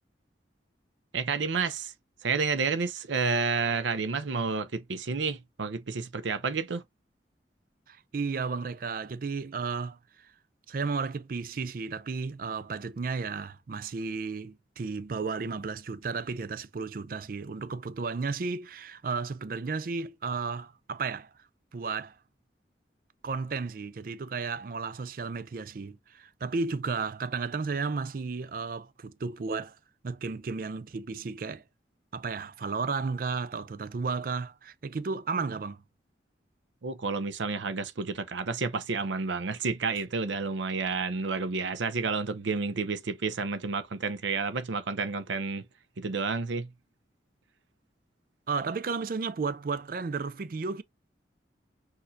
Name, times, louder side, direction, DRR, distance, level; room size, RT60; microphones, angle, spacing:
voice 1, 1.1-1.9 2.2-6.8 36.8-45.6 46.0-46.7, right 4 dB, 90° right, 0.6 m, -30 dB
voice 2, 7.9-10.3 10.7-21.3 21.7-22.2 23.2-29.8 30.0-31.6 32.1-35.8 48.5-50.8, right 4 dB, 50° right, 0.4 m, -33 dB
6.3 x 2.6 x 2.6 m
head